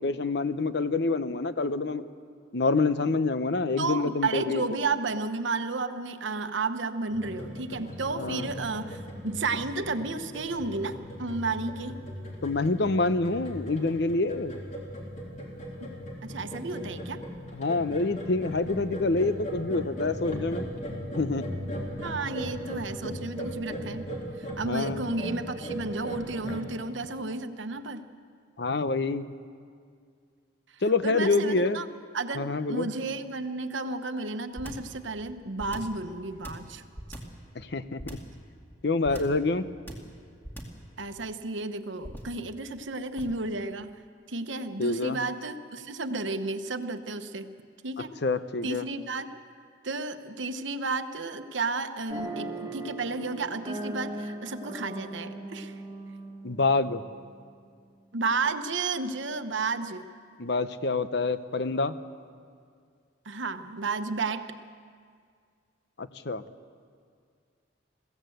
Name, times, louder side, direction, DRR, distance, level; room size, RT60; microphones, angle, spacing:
voice 1, 0.0-2.1 2.5-4.6 8.2-8.5 12.4-14.6 17.5-20.7 21.2-21.5 24.7-25.0 28.6-29.3 30.8-31.8 32.3-32.9 37.6-38.2 38.8-39.7 44.8-45.2 48.2-48.8 56.4-57.0 60.4-62.0 66.0-66.4, left 3 dB, 60° left, 12 dB, 0.7 m, -27 dB
voice 2, 3.8-9.0 9.2-12.0 15.8-15.9 16.2-17.2 22.0-24.0 24.4-28.0 30.7-31.9 32.1-36.8 41.0-44.0 44.3-47.5 47.8-48.2 48.6-49.4 49.8-55.7 58.1-60.1 63.2-64.6, right 3 dB, 75° right, 9 dB, 1.0 m, -32 dB
sound 1, 7.1-26.6, equal, 40° left, 3.6 m, -38 dB
sound 2, 34.6-34.9 35.6-36.0 36.4-37.4 38.0-38.4 39.0-39.4 39.9-40.2 40.4-40.9 42.0-42.4 43.2-43.5, equal, 10° left, 2.4 m, -40 dB
sound 3, 52.1-57.5, right 1 dB, 20° right, 1.6 m, -39 dB
22.5 x 16.0 x 7.9 m, 2.1 s
head